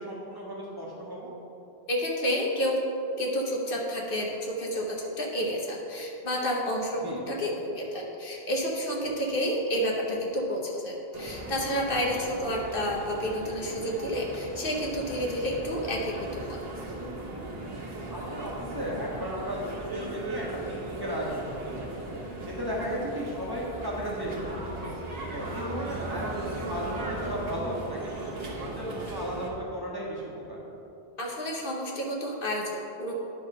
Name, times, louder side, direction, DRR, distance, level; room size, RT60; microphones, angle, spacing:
voice 1, 0.0-1.3 7.0-7.2 12.1-12.2 18.1-22.0 22.5-24.9 25.3-30.6, equal, 20° right, -6 dB, 1.4 m, -35 dB
voice 2, 1.9-2.8 3.2-16.6 31.2-33.2, equal, 60° left, -1 dB, 1.1 m, -30 dB
sound 1, 11.1-29.5, right 2 dB, 40° right, 1.3 m, -38 dB
10.0 x 3.6 x 5.4 m, 3.0 s
omnidirectional pair, 1.1 m